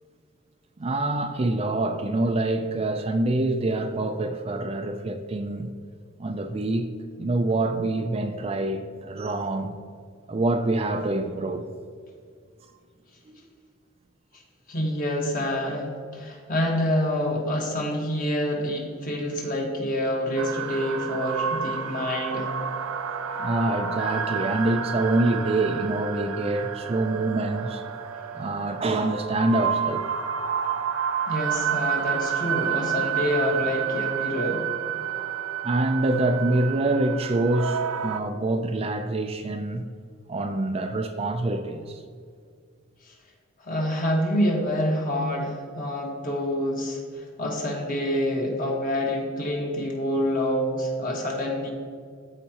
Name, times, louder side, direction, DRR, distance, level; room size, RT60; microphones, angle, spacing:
voice 1, 0.8-5.7 6.2-6.9 7.2-9.7 10.3-11.7 13.3-13.4 23.4-27.8 28.3-30.1 35.6-39.8 40.3-42.0, right 2 dB, 30° right, 7 dB, 0.4 m, -26 dB
voice 2, 14.7-22.5 31.3-34.7 43.0-43.1 43.6-51.7, equal, 40° left, 0 dB, 1.4 m, -27 dB
sound 1, 20.4-38.2, right 8 dB, 90° right, 0.5 m, -30 dB
14.5 x 4.9 x 2.9 m, 2.1 s
head